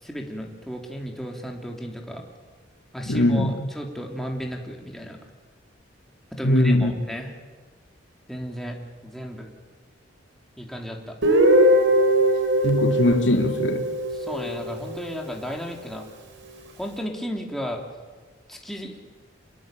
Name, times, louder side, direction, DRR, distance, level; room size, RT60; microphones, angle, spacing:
voice 1, 0.0-2.2 2.9-5.2 6.3-7.3 8.3-8.8 9.0-9.5 10.6-11.2 14.1-16.0 16.8-17.8 18.5-19.1, equal, ahead, 1 dB, 3.3 m, -34 dB
voice 2, 3.1-3.5 6.4-6.9 12.6-13.9, left 1 dB, 75° left, 5 dB, 2.5 m, -20 dB
Guitar, 11.2-15.0, right 1 dB, 75° right, 4.6 m, -21 dB
27.0 x 21.5 x 9.2 m, 1.4 s
head